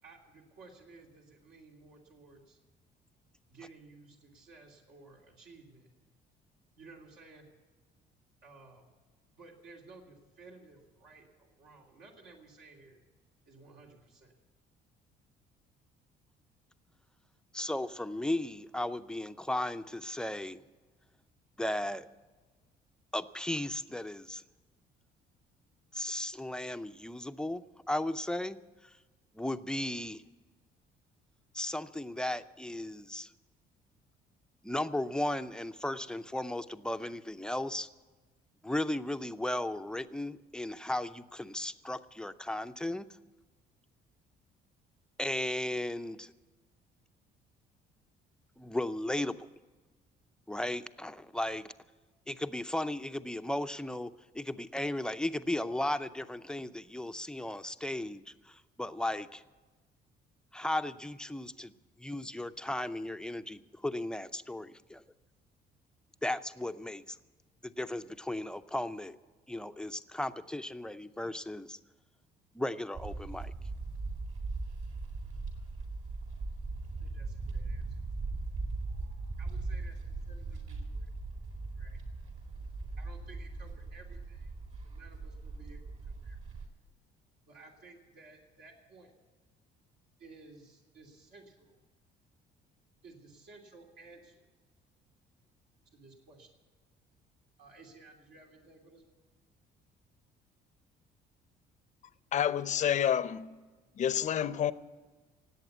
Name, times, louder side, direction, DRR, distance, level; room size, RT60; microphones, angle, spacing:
voice 1, 0.0-2.6 3.5-5.9 6.8-7.5 8.4-8.8 9.4-13.0 13.4-14.3 77.0-77.9 79.4-81.1 81.8-82.0 83.0-84.5 84.8-86.4 87.5-89.1 90.2-91.8 93.0-94.5 95.9-96.5 97.6-99.0, right 3 dB, 70° right, 3.0 m, -55 dB
voice 2, 17.5-20.6 21.6-22.1 23.1-24.4 25.9-28.6 28.8-28.9 29.3-30.2 31.5-33.3 34.6-37.9 38.6-43.1 45.2-46.3 48.6-49.5 50.5-51.7 52.3-59.4 60.5-61.7 62.0-65.0 66.2-67.2 67.6-69.2 69.5-71.8 72.5-73.5, left 1 dB, 5° left, 0.6 m, -35 dB
sound 1, 72.9-86.7, right 3 dB, 45° right, 3.9 m, -39 dB
voice 3, 102.3-103.5 104.0-104.7, left 9 dB, 45° left, 0.7 m, -29 dB
18.0 x 8.5 x 8.0 m
cardioid pair, 110°, 17 cm